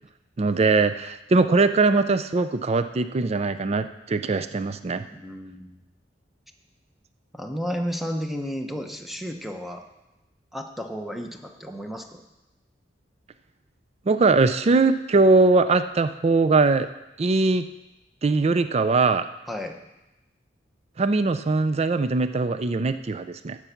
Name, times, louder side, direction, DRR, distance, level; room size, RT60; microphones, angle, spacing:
voice 1, 0.4-5.0 14.1-16.9 17.2-17.6 18.2-19.3 21.0-23.6, right 3 dB, 35° right, 11 dB, 0.4 m, -21 dB
voice 2, 5.1-5.8 7.3-9.8 10.5-12.2 19.5-19.8, equal, ahead, 4 dB, 0.9 m, -32 dB
14.5 x 6.1 x 5.8 m, 0.97 s
head